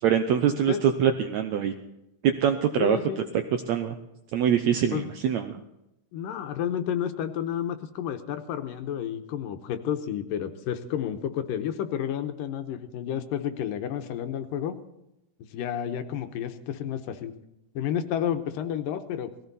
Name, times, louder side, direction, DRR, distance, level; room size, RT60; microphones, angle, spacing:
voice 1, 0.0-1.7 2.2-3.0 3.7-4.0 4.3-5.6, right 8 dB, 85° right, 7 dB, 1.6 m, -24 dB
voice 2, 2.8-3.2 4.9-5.1 6.1-14.8 15.5-17.3 17.8-19.5, left 9 dB, 75° left, 7 dB, 2.5 m, -31 dB
19.0 x 16.0 x 4.1 m, 0.89 s
omnidirectional pair, 4.1 m